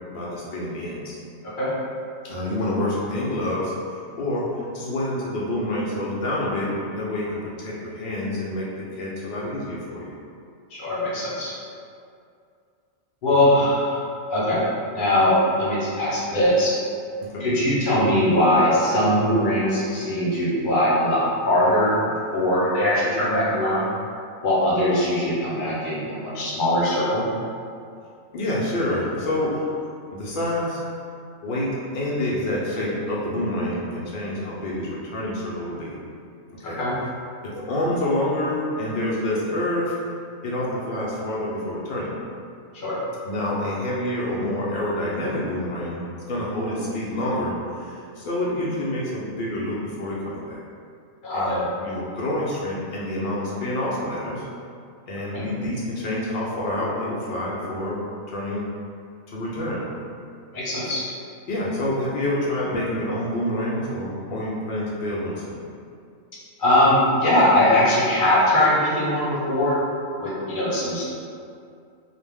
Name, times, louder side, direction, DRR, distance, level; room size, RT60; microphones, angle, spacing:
voice 1, 0.1-1.2 2.2-4.5 4.7-10.1 13.5-13.6 17.2-17.5 28.3-29.7 30.1-30.8 31.4-35.9 36.6-36.8 37.4-40.0 40.4-42.1 43.3-46.0 46.3-50.6 51.3-54.5 55.1-58.0 58.3-58.6 59.3-59.8 61.5-65.6, left 1 dB, 90° left, -6 dB, 0.4 m, -27 dB
voice 2, 10.7-11.5 13.2-14.0 14.3-14.7 14.9-16.7 17.4-21.9 22.3-23.9 24.4-27.3 36.8-37.0 42.7-43.0 51.2-51.6 55.3-55.4 60.5-61.0 66.6-69.8 70.2-71.0, left 1 dB, 50° left, -7 dB, 0.7 m, -21 dB
2.4 x 2.1 x 3.4 m, 2.4 s
omnidirectional pair, 1.5 m